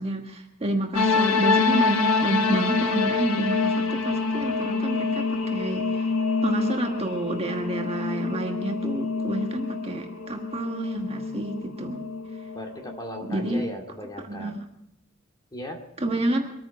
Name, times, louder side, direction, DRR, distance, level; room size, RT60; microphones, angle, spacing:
voice 1, 0.0-6.1 6.4-12.0 13.3-13.6 14.2-14.6 16.0-16.5, right 1 dB, 30° right, 3 dB, 1.5 m, -29 dB
sound 1, 0.9-13.7, left 4 dB, 90° left, 1.1 m, -26 dB
voice 2, 12.5-14.6 15.5-15.8, equal, 20° left, 2 dB, 2.3 m, -37 dB
24.5 x 9.4 x 5.1 m, 0.80 s
head